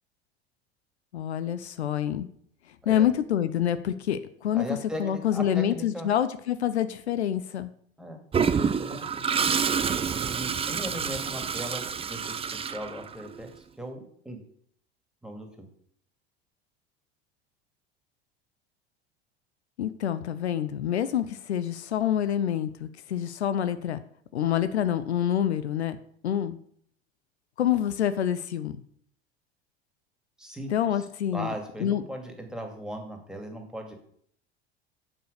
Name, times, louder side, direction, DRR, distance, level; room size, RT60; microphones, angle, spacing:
voice 1, 1.1-2.3 2.9-7.7 19.8-24.0 24.3-26.6 27.6-28.7 30.7-31.5 31.8-32.0, left 10 dB, 80° left, 12 dB, 0.6 m, -27 dB
voice 2, 4.5-6.1 8.0-8.2 8.5-9.6 10.2-14.4 15.2-15.5 30.4-30.7 31.3-33.9, equal, ahead, 3 dB, 2.4 m, -38 dB
Toilet flush, 8.3-13.4, right 6 dB, 20° right, 0.5 m, -28 dB
7.1 x 6.2 x 6.6 m, 0.63 s
hypercardioid pair, 75°, 32 cm